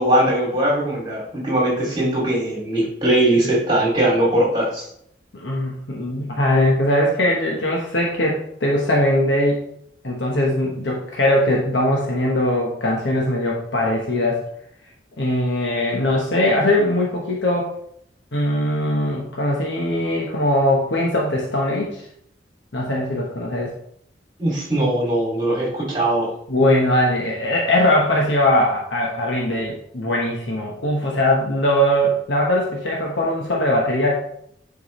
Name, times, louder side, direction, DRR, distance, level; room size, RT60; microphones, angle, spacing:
voice 1, 0.0-4.9 24.4-26.3, right 1 dB, 25° right, -3 dB, 2.5 m, -20 dB
voice 2, 5.3-9.6 10.0-14.4 15.2-17.7 18.3-22.1 22.7-23.7 26.5-34.1, left 1 dB, 75° left, -2 dB, 1.2 m, -20 dB
9.7 x 4.7 x 3.2 m, 0.71 s
head